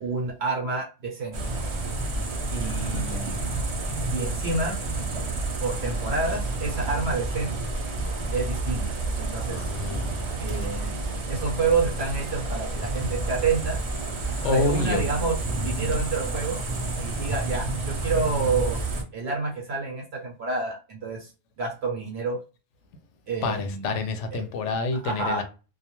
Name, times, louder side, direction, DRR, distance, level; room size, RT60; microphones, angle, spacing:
voice 1, 0.0-1.4 2.5-3.4 4.1-4.8 5.6-7.7 8.3-9.7 10.4-11.0 11.3-13.8 14.4-15.4 15.6-16.6 17.0-18.8 19.1-21.3 21.6-22.4 23.3-24.0 24.3-24.4 25.0-25.4, right 4 dB, 65° right, 0.8 m, -29 dB
sound 1, 1.3-19.0, right 2 dB, 50° right, 0.3 m, -29 dB
voice 2, 2.5-3.1 9.4-10.3 14.4-15.0 23.4-25.4, left 3 dB, 75° left, 0.9 m, -28 dB
2.2 x 2.2 x 2.9 m
omnidirectional pair, 1.2 m